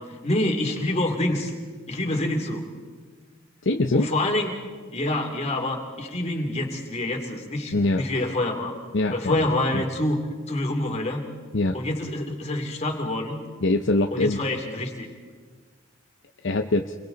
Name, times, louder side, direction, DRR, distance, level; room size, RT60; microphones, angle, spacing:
voice 1, 0.0-1.5 1.9-2.7 3.9-4.5 4.9-8.7 9.1-10.2 10.5-11.2 11.7-13.4 14.1-15.1, left 1 dB, 35° left, 2 dB, 2.9 m, -27 dB
voice 2, 3.6-4.1 7.7-8.1 8.9-9.8 11.5-11.8 13.6-14.4 16.4-16.9, left 2 dB, 65° left, 5 dB, 0.7 m, -23 dB
28.5 x 22.5 x 4.0 m, 1.5 s
head